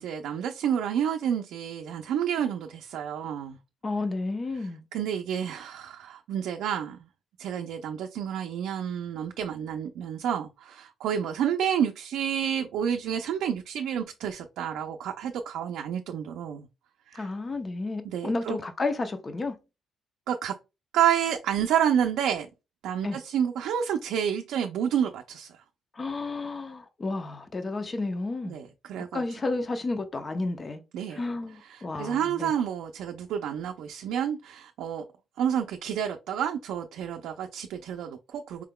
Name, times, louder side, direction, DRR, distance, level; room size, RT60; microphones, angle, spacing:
voice 1, 0.0-3.6 4.9-7.0 7.4-16.7 17.1-17.3 18.0-18.6 20.3-20.5 20.9-22.5 22.8-25.5 28.5-29.2 30.9-31.2 31.7-35.0 35.4-38.6, right 9 dB, 85° right, 0.5 m, -29 dB
voice 2, 3.8-4.8 17.1-19.6 23.0-23.2 25.9-28.6 29.0-30.8 31.1-32.5, left 3 dB, 30° left, 0.7 m, -32 dB
4.6 x 3.6 x 2.2 m
cardioid pair, 90°, 0 cm